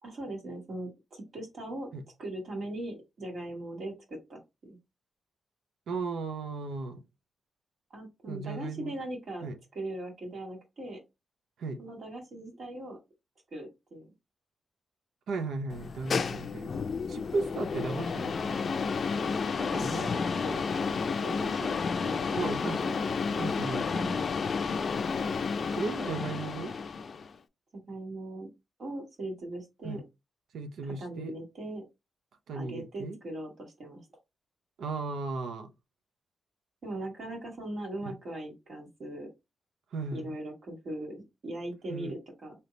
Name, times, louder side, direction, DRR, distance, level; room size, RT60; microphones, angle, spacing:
voice 1, 0.0-1.9 2.2-4.8 7.9-9.5 9.7-11.0 11.8-13.0 13.5-14.1 16.7-17.1 19.6-20.9 21.2-22.5 22.8-23.0 24.0-24.2 27.7-28.5 28.8-30.0 30.8-31.8 32.5-34.0 36.8-39.3 40.1-42.5, right 1 dB, 55° right, 1.6 m, -40 dB
voice 2, 5.9-7.1 8.3-8.9 9.4-9.6 11.6-11.8 15.3-16.8 17.1-18.5 19.8-20.1 22.4-23.0 23.3-24.1 25.8-26.7 29.8-30.0 30.5-31.4 32.5-33.2 34.8-35.7 38.0-38.2 39.9-40.4 41.9-42.1, right 3 dB, 90° right, 0.6 m, -36 dB
sound 1, 15.7-27.3, left 5 dB, 50° left, 0.4 m, -31 dB
3.3 x 2.8 x 3.9 m
cardioid pair, 110°, 0 cm